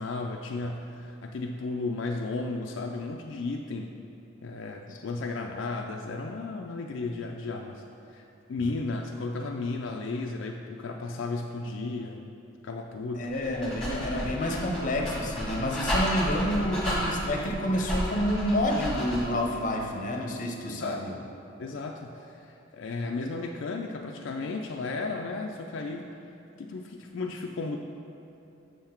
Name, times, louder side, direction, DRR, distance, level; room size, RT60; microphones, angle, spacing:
voice 1, 0.0-3.9 4.4-12.2 12.6-13.3 20.6-21.2 21.6-26.1 26.6-27.8, left 3 dB, 65° left, 2 dB, 0.4 m, -34 dB
voice 2, 13.1-21.1, left 1 dB, 40° left, 1 dB, 0.7 m, -29 dB
Dog, 13.3-19.4, equal, 5° left, 1.3 m, -32 dB
7.0 x 5.7 x 4.4 m, 2.7 s
head